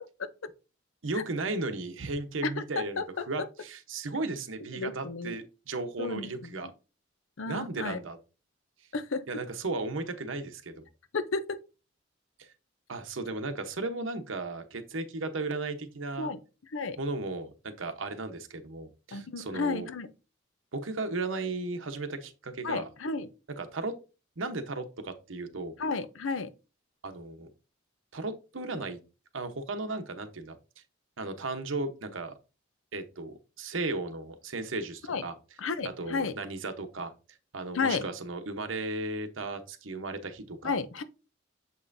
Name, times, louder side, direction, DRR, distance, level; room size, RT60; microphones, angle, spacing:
voice 1, 1.0-6.7 7.5-8.2 9.3-10.9 12.4-12.5 12.9-16.3 17.0-19.9 20.7-22.9 23.5-24.0 24.4-25.7 27.0-27.5 28.1-29.0 29.3-30.6 31.2-32.3 32.9-35.3 35.8-37.1 37.5-40.7, right 3 dB, 85° right, 1.0 m, -35 dB
voice 2, 2.4-3.2 4.7-5.3 6.0-6.7 7.4-8.0 8.9-9.2 11.1-11.6 16.2-16.4 16.7-17.0 19.1-20.1 22.6-23.3 25.8-26.5 35.1-35.2 35.6-36.3 37.7-38.0 40.6-41.0, left 4 dB, 85° left, 0.7 m, -32 dB
7.3 x 5.5 x 2.6 m
head